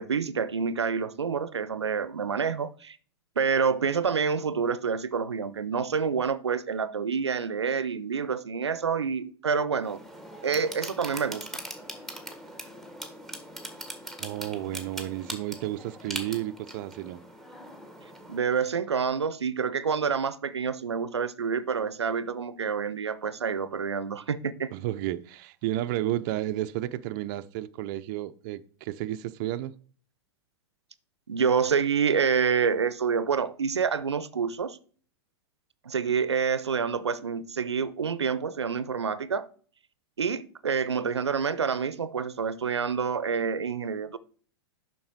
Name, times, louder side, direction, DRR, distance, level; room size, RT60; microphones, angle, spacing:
voice 1, 0.0-3.0 3.4-10.0 10.4-11.5 18.3-24.7 31.3-34.8 35.9-39.5 40.2-44.2, right 6 dB, 85° right, 0.6 m, -27 dB
sound 1, 9.8-18.4, right 1 dB, ahead, 1.6 m, -41 dB
voice 2, 14.2-17.2 24.7-29.7, right 14 dB, 45° right, 0.5 m, -32 dB
7.2 x 5.8 x 4.6 m
hypercardioid pair, 105°, 14 cm